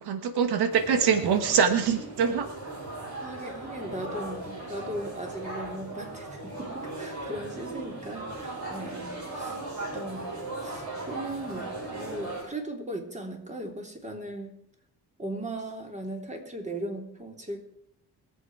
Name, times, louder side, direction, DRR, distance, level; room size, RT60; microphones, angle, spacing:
voice 1, 0.0-2.5 9.5-9.6, right 7 dB, 85° right, 9 dB, 1.5 m, -24 dB
sound 1, 0.7-12.4, right 2 dB, 50° right, 7.8 m, -38 dB
voice 2, 3.2-14.5 15.2-17.6, right 1 dB, 20° right, 3 dB, 3.4 m, -38 dB
23.5 x 7.9 x 4.8 m, 0.75 s
cardioid pair, 95°, 38 cm